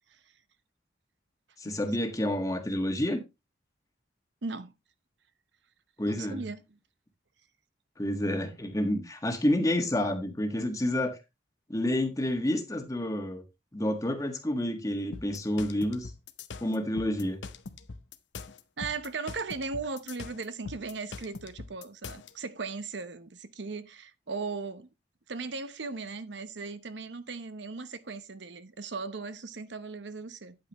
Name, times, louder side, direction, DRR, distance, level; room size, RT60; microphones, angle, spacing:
voice 1, 1.6-3.2 6.0-6.4 8.0-11.2 11.7-13.4 13.7-16.1 16.6-17.4, left 1 dB, 20° left, 1.5 m, -29 dB
voice 2, 4.4-4.7 6.1-6.6 18.8-24.9 25.3-30.6, right 4 dB, 75° right, 0.8 m, -37 dB
sound 1, 15.1-22.3, left 4 dB, 80° left, 0.8 m, -42 dB
9.6 x 8.8 x 3.0 m
head